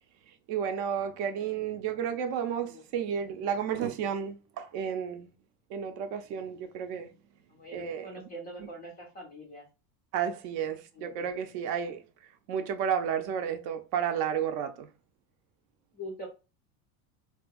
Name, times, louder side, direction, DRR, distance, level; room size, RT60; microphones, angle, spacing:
voice 1, 0.3-5.3 5.7-7.1 7.7-8.1 10.1-14.9, right 8 dB, 50° right, 0.5 m, -32 dB
voice 2, 7.5-9.7 11.0-11.1 15.9-16.3, equal, 20° left, 0.3 m, -43 dB
3.4 x 2.7 x 2.2 m
supercardioid pair, 155°, 48 cm